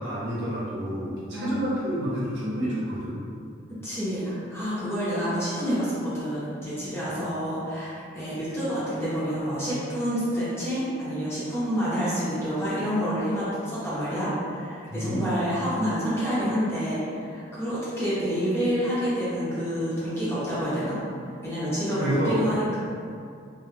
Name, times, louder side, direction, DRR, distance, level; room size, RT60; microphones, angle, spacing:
voice 1, 0.0-3.2 14.9-15.2 21.9-22.4, equal, 70° right, -7 dB, 0.7 m, -29 dB
voice 2, 1.1-1.6 3.8-21.0 21.2-22.8, equal, 15° left, -12 dB, 0.8 m, -28 dB
2.3 x 2.2 x 3.3 m, 2.3 s
head